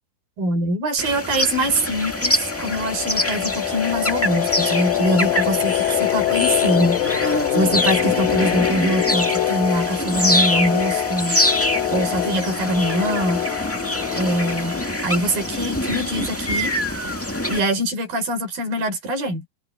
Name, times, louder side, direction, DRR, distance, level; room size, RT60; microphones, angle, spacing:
voice 1, 0.4-7.0 7.3-11.4 11.9-13.5 14.2-16.7 17.5-19.5, equal, 70° right, 8.3 m, -23 dB
sound 1, 1.0-17.6, left 1 dB, 15° left, 0.4 m, -25 dB
sound 2, 1.7-16.3, left 12 dB, 75° left, 3.1 m, -25 dB
omnidirectional pair, 4.2 m